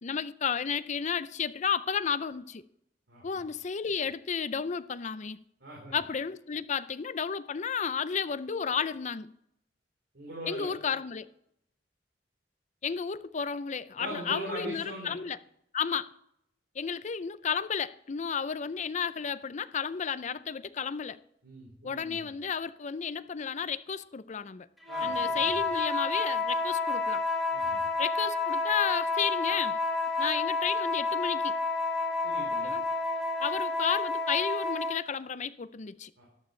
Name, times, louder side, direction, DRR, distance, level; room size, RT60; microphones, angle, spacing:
voice 1, 0.0-2.6 3.2-5.4 5.9-9.3 10.5-11.2 12.8-15.4 15.7-16.1 16.8-21.2 21.8-24.7 25.0-27.2 28.0-29.8 30.2-31.6 32.6-32.8 33.4-36.1, left 6 dB, 40° left, 0.5 m, -32 dB
voice 2, 3.1-3.4 5.6-6.0 10.1-10.7 14.0-15.1 21.4-22.3 24.9-25.7 27.5-27.8 32.2-32.7 36.2-36.3, right 1 dB, 85° right, 4.0 m, -41 dB
sound 1, 24.8-35.0, left 3 dB, ahead, 2.5 m, -30 dB
14.0 x 11.5 x 3.2 m
head